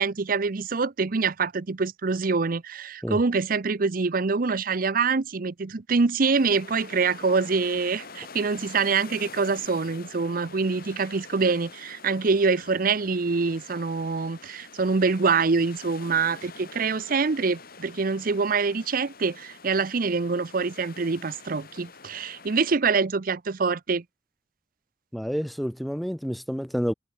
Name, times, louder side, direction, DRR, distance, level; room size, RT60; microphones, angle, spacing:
voice 1, 0.0-24.0, right 4 dB, 50° right, 0.7 m, -25 dB
sound 1, 6.3-22.8, left 4 dB, 55° left, 6.4 m, -46 dB
voice 2, 25.1-26.9, equal, ahead, 0.3 m, -29 dB
head